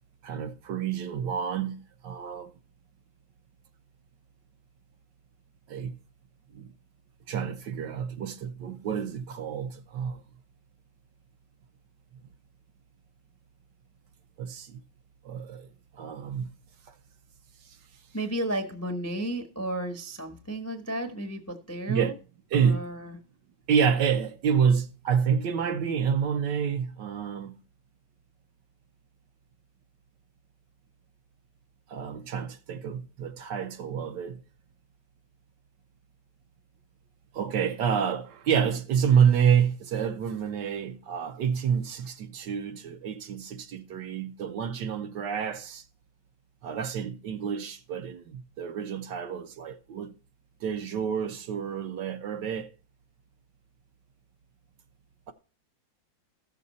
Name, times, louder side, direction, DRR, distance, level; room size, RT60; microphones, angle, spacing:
voice 1, 0.2-2.5 5.7-5.9 6.5-6.7 7.3-10.2 14.4-14.8 15.2-15.7 15.9-16.5 21.9-22.1 22.5-22.9 23.7-27.6 31.9-34.4 37.3-45.8 46.6-50.1 50.6-52.7, right 7 dB, 70° right, 1.4 m, -28 dB
voice 2, 18.1-22.2 22.5-23.2, right 1 dB, 15° left, 0.6 m, -33 dB
14.0 x 6.8 x 4.1 m
omnidirectional pair, 2.1 m